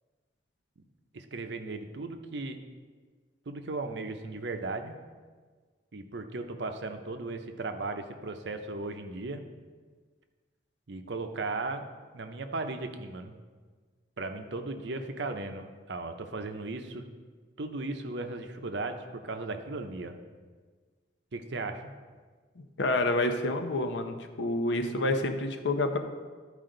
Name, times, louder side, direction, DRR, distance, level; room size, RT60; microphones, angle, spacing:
voice 1, 1.1-2.6 3.5-5.0 5.9-9.4 10.9-11.8 12.1-13.4 14.2-17.0 17.6-20.2 21.3-21.9, right 3 dB, 65° right, 6 dB, 0.7 m, -36 dB
voice 2, 22.6-26.0, left 2 dB, 70° left, 6 dB, 0.7 m, -28 dB
12.5 x 5.0 x 3.8 m, 1.5 s
head